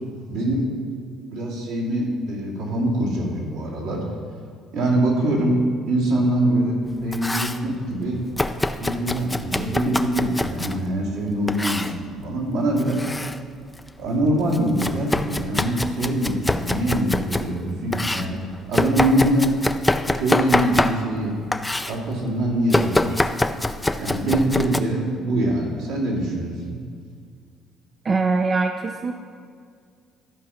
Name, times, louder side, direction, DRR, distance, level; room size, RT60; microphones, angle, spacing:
voice 1, 0.3-0.6 1.3-4.0 4.7-8.2 8.8-13.0 14.0-19.5 20.1-21.3 21.9-23.4 24.0-26.8, right 1 dB, 85° right, -5 dB, 2.8 m, -23 dB
Domestic sounds home sounds, 6.9-7.6 8.4-10.8 11.5-12.0 12.7-13.4 13.8-17.5 17.9-21.2 21.5-22.0 22.7-24.8, left 2 dB, 15° left, 0.5 m, -25 dB
voice 2, 28.0-29.1, right 4 dB, 40° right, 5 dB, 0.6 m, -22 dB
13.0 x 5.0 x 5.8 m, 2.1 s
supercardioid pair, 75°, 0 cm